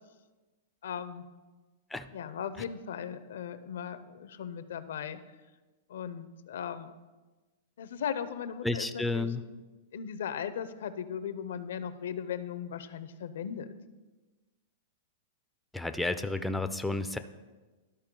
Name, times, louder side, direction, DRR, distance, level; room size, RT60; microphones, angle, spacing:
voice 1, 0.8-1.2 2.1-5.2 5.9-6.9 7.8-9.3 9.9-13.7, left 8 dB, 80° left, 12 dB, 0.5 m, -37 dB
voice 2, 8.6-9.4 15.7-17.2, left 2 dB, 5° left, 9 dB, 0.4 m, -31 dB
12.5 x 4.3 x 3.7 m, 1.2 s
hypercardioid pair, 135°, 0 cm